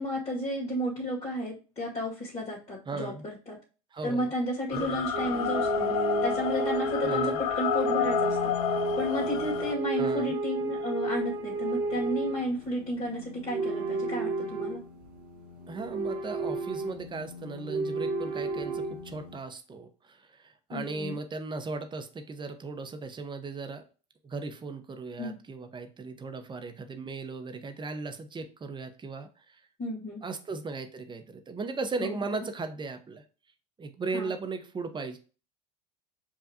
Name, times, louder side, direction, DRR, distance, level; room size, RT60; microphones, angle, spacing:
voice 1, 0.0-3.6 4.0-5.9 6.2-8.5 9.0-14.8 20.7-21.2 25.2-25.4 29.8-30.2 32.0-32.3 34.1-34.3, equal, 30° left, -5 dB, 1.9 m, -32 dB
voice 2, 2.9-3.2 3.9-4.3 4.7-5.1 7.0-7.4 10.0-10.3 15.7-23.8 24.2-29.6 30.2-33.2 33.8-35.2, right 3 dB, 25° right, 7 dB, 0.9 m, -37 dB
sound 1, 4.7-9.7, left 11 dB, 75° left, 0.4 m, -30 dB
sound 2, 5.1-19.4, right 2 dB, 75° right, 1.3 m, -32 dB
7.3 x 2.5 x 2.8 m, 0.35 s
hypercardioid pair, 75°, 20 cm